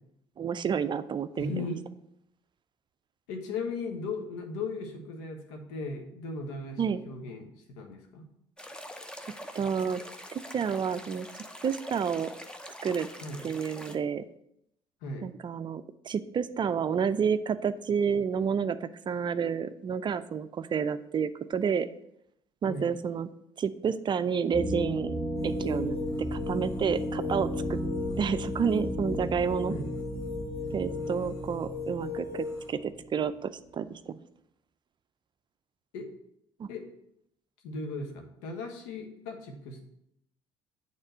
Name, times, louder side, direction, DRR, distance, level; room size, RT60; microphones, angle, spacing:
voice 1, 0.4-1.7 6.8-7.0 9.5-10.0 10.3-11.3 11.6-12.3 12.8-13.1 13.4-14.2 15.2-21.9 22.6-23.3 23.6-25.1 25.4-26.0 26.3-27.8 28.2-29.8 30.7-34.1 36.6-36.7, right 7 dB, 35° right, 13 dB, 0.5 m, -30 dB
voice 2, 1.4-1.8 3.3-8.3 13.2-13.4 15.0-15.3 22.7-22.9 29.7-29.9 35.9-36.1 36.7-36.8 37.6-39.8, left 3 dB, 70° left, 4 dB, 1.3 m, -37 dB
sound 1, 8.6-14.0, equal, 5° left, 0.8 m, -44 dB
sound 2, 24.5-33.2, equal, 30° left, 2.5 m, -34 dB
sound 3, 25.3-32.7, left 5 dB, 90° left, 1.2 m, -39 dB
8.8 x 3.7 x 6.2 m, 0.76 s
figure-of-eight pair, 55°, 13 cm